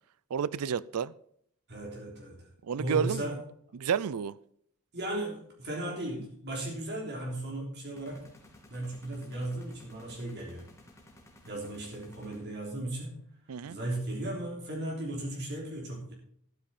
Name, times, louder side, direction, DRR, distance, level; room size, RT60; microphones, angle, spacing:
voice 1, 0.3-1.1 2.6-3.3 3.7-4.4 13.5-13.8, right 7 dB, 75° right, 0.4 m, -30 dB
voice 2, 1.7-2.5 2.8-3.4 4.9-8.2 8.7-10.6 11.4-13.2 13.6-16.1, right 1 dB, 50° right, 3.4 m, -36 dB
sound 1, 8.0-12.8, left 1 dB, 15° left, 2.6 m, -56 dB
12.0 x 9.8 x 4.2 m
head